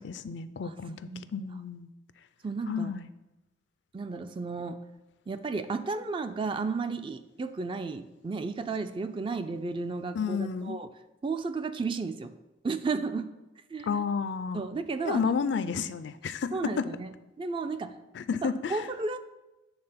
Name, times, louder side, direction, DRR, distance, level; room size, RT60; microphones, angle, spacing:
voice 1, 0.0-1.9 2.7-3.1 10.1-10.8 13.8-14.6 15.0-16.9 18.1-18.8, left 5 dB, 60° left, 13 dB, 0.4 m, -31 dB
voice 2, 2.4-2.9 3.9-4.8 5.3-10.9 11.2-12.3 12.6-13.3 13.7-14.0 14.5-15.2 15.8-15.9 16.5-17.1 17.4-17.9 18.4-19.2, right 4 dB, 25° right, 10 dB, 0.3 m, -33 dB
8.7 x 3.6 x 5.7 m, 1.0 s
head